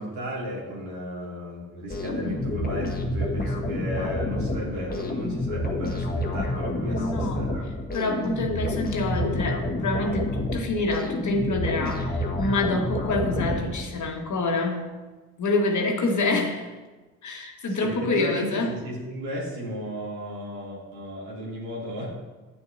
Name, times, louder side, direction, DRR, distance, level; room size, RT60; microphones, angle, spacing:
voice 1, 0.0-7.6 17.7-22.1, equal, 70° right, -5 dB, 2.9 m, -34 dB
sound 1, 1.9-14.1, left 1 dB, 20° left, 1.5 m, -29 dB
voice 2, 6.8-7.5 7.9-14.9 15.4-16.7 17.2-18.7, left 2 dB, 45° left, 2 dB, 1.6 m, -27 dB
9.3 x 8.7 x 2.7 m, 1.2 s
hypercardioid pair, 45°, 41 cm